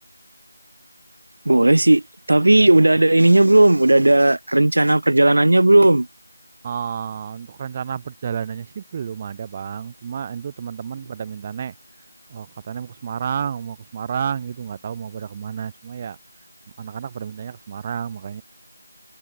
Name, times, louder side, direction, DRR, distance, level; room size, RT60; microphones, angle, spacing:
voice 1, 1.4-2.0 2.3-6.1, right 1 dB, 65° right, 1.3 m, -14 dB
voice 2, 6.6-11.7 12.3-16.2 16.8-18.4, right 7 dB, 20° right, 0.7 m, -31 dB
figure-of-eight pair, 170°, 0 cm